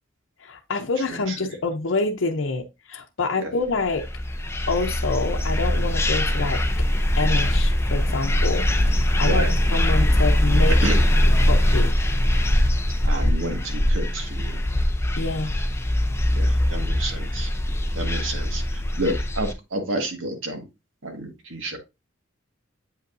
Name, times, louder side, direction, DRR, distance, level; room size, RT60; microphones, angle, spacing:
voice 1, 0.4-4.0 4.7-6.6 7.2-9.5 9.7-10.8 11.4-11.9 15.2-15.5, left 3 dB, 75° left, 0.7 m, -27 dB
sound 1, 3.8-19.5, left 1 dB, 15° left, 0.6 m, -21 dB
voice 2, 13.0-14.6 16.3-17.5 17.9-20.6 21.0-21.8, right 1 dB, 85° right, 1.7 m, -30 dB
8.0 x 5.4 x 2.6 m
head